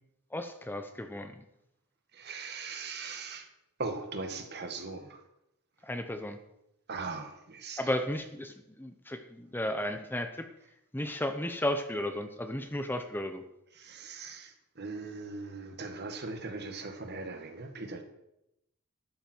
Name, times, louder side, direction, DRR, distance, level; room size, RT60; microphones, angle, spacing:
voice 1, 0.3-1.3 5.8-6.4 7.8-10.5 10.9-13.4, left 1 dB, 10° left, 7 dB, 0.8 m, -34 dB
voice 2, 2.1-3.5 3.8-5.2 6.9-7.8 13.8-14.5 14.8-18.0, right 3 dB, 50° right, 6 dB, 1.8 m, -39 dB
14.0 x 12.5 x 4.6 m, 0.84 s
head